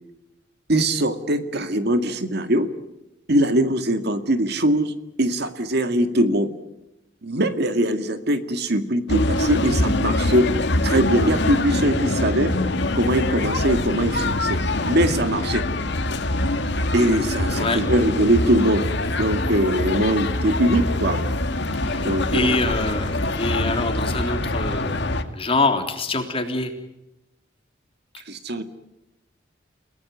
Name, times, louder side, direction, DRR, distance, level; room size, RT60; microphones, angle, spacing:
voice 1, 0.7-2.7 3.3-4.9 5.2-6.5 7.2-10.5 10.8-12.5 13.0-14.6 14.9-15.6 16.9-18.8 19.2-21.2 22.0-22.5 28.3-28.6, right 1 dB, 60° right, 8 dB, 2.1 m, -21 dB
sound 1, 9.1-25.2, left 2 dB, 60° left, 2.2 m, -24 dB
voice 2, 21.9-23.1 23.4-26.7, left 2 dB, 30° left, 5 dB, 3.5 m, -25 dB
30.0 x 18.0 x 9.5 m, 0.93 s
head